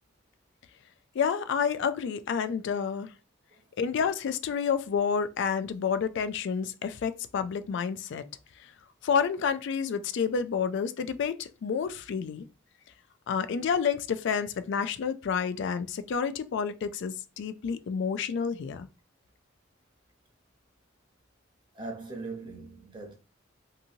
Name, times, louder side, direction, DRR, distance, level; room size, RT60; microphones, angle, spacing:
voice 1, 1.2-3.1 3.8-8.2 9.0-12.4 13.3-18.9, left 6 dB, 60° left, 0.3 m, -29 dB
voice 2, 21.7-23.1, right 3 dB, 25° right, 0.8 m, -40 dB
2.7 x 2.6 x 2.7 m
head